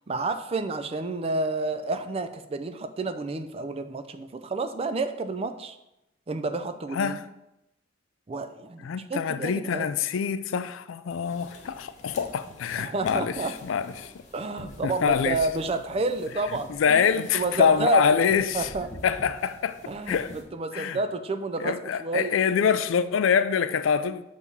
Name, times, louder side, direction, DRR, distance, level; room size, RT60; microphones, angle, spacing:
voice 1, 0.1-5.8 6.3-7.2 8.3-9.9 12.7-13.5 14.3-18.2 18.5-18.9 19.9-21.7 22.0-22.3, right 3 dB, 30° right, 0.4 m, -30 dB
voice 2, 8.8-14.1 14.8-15.4 16.7-18.7 19.0-19.8 20.1-20.3 20.7-21.0 21.6-24.2, left 7 dB, 90° left, 0.4 m, -25 dB
sound 1, 11.1-20.4, left 1 dB, 35° left, 1.1 m, -46 dB
6.3 x 3.5 x 5.5 m
head